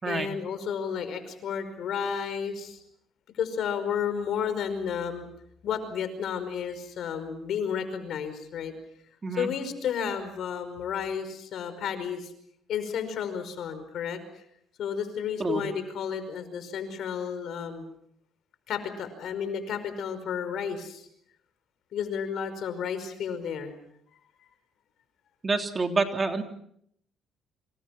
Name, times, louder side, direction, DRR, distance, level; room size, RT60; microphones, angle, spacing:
voice 1, 0.0-2.8 3.3-5.2 5.6-8.7 9.4-12.3 12.7-14.2 14.8-17.8 18.7-21.1 21.9-23.7, left 7 dB, 65° left, 10 dB, 5.3 m, -32 dB
voice 2, 25.4-26.4, right 3 dB, 30° right, 5 dB, 3.2 m, -27 dB
27.5 x 26.5 x 6.0 m, 0.70 s
cardioid pair, 95°, 0 cm